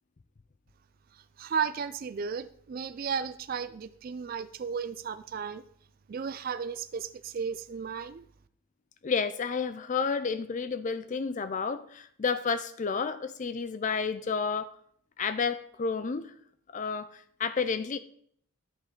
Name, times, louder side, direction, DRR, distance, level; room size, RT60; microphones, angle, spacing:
voice 1, 1.4-5.6 6.1-8.2, right 6 dB, 40° right, 11 dB, 0.3 m, -34 dB
voice 2, 9.0-14.7 15.2-16.3 16.7-18.0, left 5 dB, 35° left, 13 dB, 0.4 m, -31 dB
10.5 x 5.6 x 3.7 m, 0.63 s
head